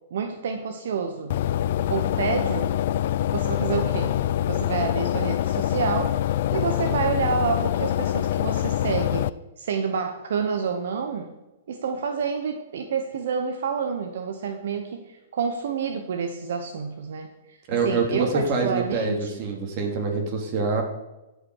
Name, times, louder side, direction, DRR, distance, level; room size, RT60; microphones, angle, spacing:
voice 1, 0.1-1.3 1.9-2.7 3.3-4.1 4.5-6.1 6.5-9.3 9.6-11.3 11.7-19.3, right 6 dB, 70° right, 5 dB, 1.1 m, -28 dB
sound 1, 1.3-9.3, left 12 dB, 60° left, 0.4 m, -25 dB
voice 2, 17.7-20.8, right 4 dB, 40° right, 1 dB, 2.7 m, -25 dB
14.0 x 5.8 x 4.7 m, 1.0 s
hypercardioid pair, 135°, 0 cm